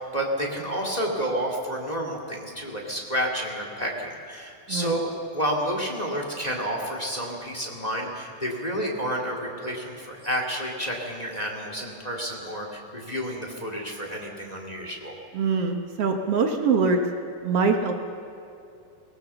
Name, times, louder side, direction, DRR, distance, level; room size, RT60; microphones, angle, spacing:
voice 1, 0.0-15.1, equal, 15° left, 0 dB, 1.6 m, -30 dB
voice 2, 4.7-5.0 15.3-17.0 17.4-17.9, right 5 dB, 60° right, 4 dB, 1.6 m, -23 dB
23.0 x 18.5 x 6.9 m, 2.6 s
omnidirectional pair, 4.0 m